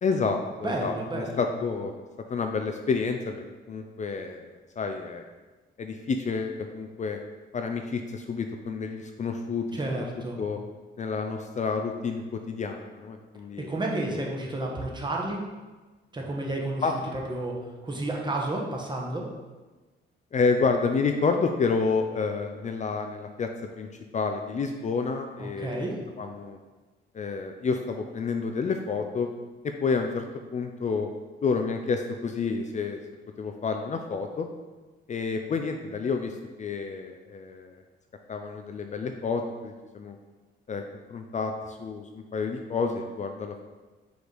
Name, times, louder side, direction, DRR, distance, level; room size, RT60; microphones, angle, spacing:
voice 1, 0.0-1.9 2.3-5.2 5.8-7.2 7.5-9.6 10.4-10.6 11.0-13.7 14.1-14.2 16.8-16.9 20.3-23.5 23.8-23.9 24.1-25.9 26.2-26.6 27.1-29.3 29.6-30.2 30.5-31.1 31.4-33.0 33.4-34.5 35.1-37.8 38.3-40.2 40.7-40.8 41.1-43.6, left 4 dB, 35° left, 5 dB, 0.5 m, -29 dB
voice 2, 0.6-1.5 9.7-10.4 13.6-15.4 16.1-16.9 17.1-17.6 17.8-19.3 25.4-26.0, right 2 dB, 25° right, -1 dB, 1.2 m, -31 dB
5.0 x 3.9 x 4.8 m, 1.2 s
cardioid pair, 90°, 20 cm